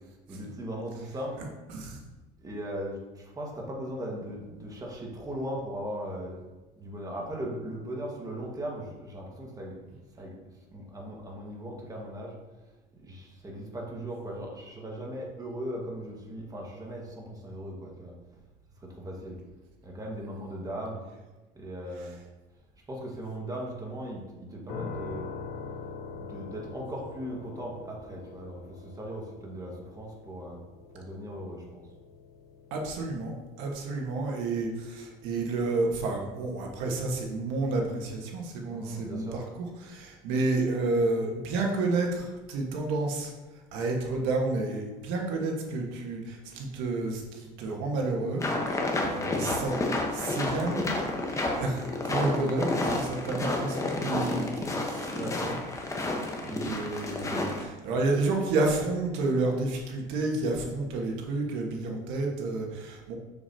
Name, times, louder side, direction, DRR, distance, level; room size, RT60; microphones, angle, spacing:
voice 1, 0.3-1.4 2.4-6.4 6.8-10.3 10.7-12.3 12.9-18.1 18.8-19.4 19.8-21.0 21.5-22.2 22.9-25.3 26.1-30.6 30.9-31.8 38.7-39.4 55.1-55.4 56.5-56.7, right 1 dB, 20° right, -2 dB, 1.6 m, -38 dB
sound 1, 24.7-37.5, left 5 dB, 55° left, 1.2 m, -45 dB
voice 2, 32.7-33.3 33.6-43.3 43.7-49.8 50.1-50.8 51.3-55.5 56.4-63.1, right 2 dB, 80° right, 1 dB, 1.5 m, -30 dB
sound 2, 48.4-57.6, left 2 dB, 15° left, 1.1 m, -30 dB
6.8 x 6.8 x 2.8 m, 1.1 s
cardioid pair, 120°, 19 cm